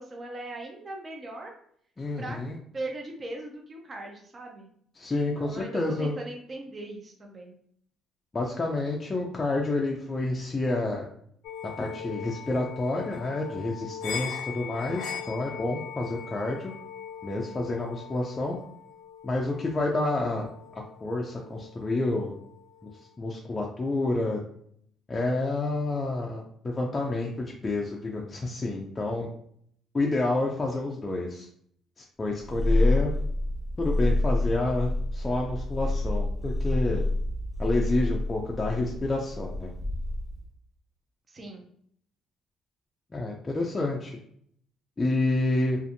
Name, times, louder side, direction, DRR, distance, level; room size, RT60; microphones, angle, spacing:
voice 1, 0.0-1.5 2.2-2.4 2.7-4.7 5.4-7.6 41.3-41.6, right 2 dB, 30° right, 1 dB, 0.5 m, -39 dB
voice 2, 2.0-2.6 5.0-6.1 8.3-11.1 11.8-16.7 17.2-18.6 19.2-20.5 21.0-22.3 22.8-22.9 23.2-24.4 25.1-29.3 29.9-31.5 32.2-33.1 33.8-37.0 37.6-39.7 43.1-44.2 45.0-45.8, left 2 dB, 20° left, -1 dB, 0.4 m, -29 dB
sound 1, 11.4-23.2, left 7 dB, 85° left, 0.4 m, -41 dB
Purr, 32.4-40.5, left 2 dB, ahead, 1.0 m, -28 dB
2.5 x 2.5 x 2.6 m, 0.65 s
cardioid pair, 115°, 0 cm